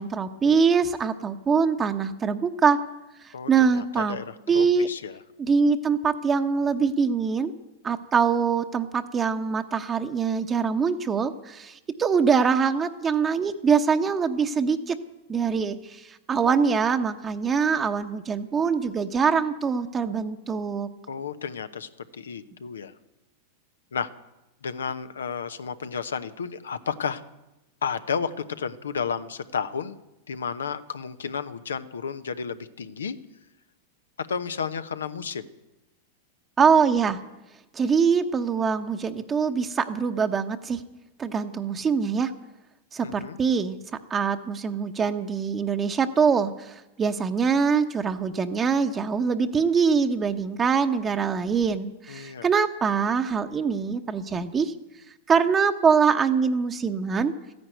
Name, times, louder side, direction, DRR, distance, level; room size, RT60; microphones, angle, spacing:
voice 1, 0.0-2.8 3.2-4.2 4.5-4.9 5.4-7.5 7.8-15.0 15.3-20.9 36.6-37.2 37.7-40.8 41.2-42.3 42.9-43.8 44.1-54.7 55.3-57.3, right 6 dB, 25° right, 6 dB, 0.9 m, -23 dB
voice 2, 3.3-5.2 21.1-22.9 23.9-24.1 24.6-27.2 27.8-30.0 30.3-33.2 34.2-35.5 43.0-43.4 52.1-52.5, left 6 dB, 90° left, 12 dB, 0.9 m, -32 dB
14.0 x 10.5 x 9.1 m, 0.98 s
hypercardioid pair, 110°, 0 cm